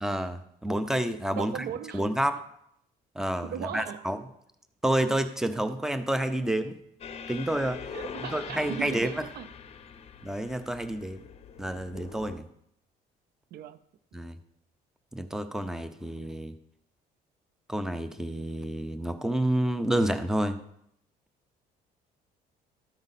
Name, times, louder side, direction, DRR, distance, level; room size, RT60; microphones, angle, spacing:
voice 1, 0.0-1.5 1.9-2.4 3.2-4.2 4.8-6.8 7.3-7.9 8.3-9.1 10.2-11.2 11.6-12.4 14.1-14.4 15.1-16.5 17.7-20.6, right 1 dB, 5° right, 0.6 m, -29 dB
voice 2, 1.3-2.0 3.4-4.1 7.9-9.5 13.5-13.8, right 10 dB, 70° right, 0.5 m, -38 dB
sound 1, 7.0-12.4, left 7 dB, 35° left, 0.7 m, -43 dB
13.0 x 5.0 x 4.1 m
cardioid pair, 110°, 17 cm